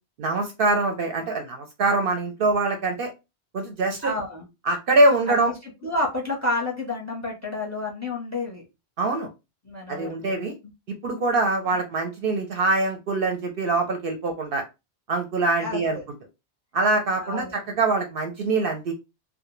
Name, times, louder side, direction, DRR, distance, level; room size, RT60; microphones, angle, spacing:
voice 1, 0.2-3.1 3.5-4.1 4.7-5.5 9.0-9.3 9.9-10.5 11.0-14.6 15.1-16.0 16.7-18.9, right 2 dB, 60° right, 4 dB, 0.7 m, -23 dB
voice 2, 4.0-4.5 5.3-8.7 9.6-10.4 11.7-11.8 15.6-16.0 17.2-17.5, left 2 dB, 20° left, 0 dB, 0.6 m, -30 dB
2.2 x 2.1 x 3.0 m, 0.25 s
omnidirectional pair, 1.1 m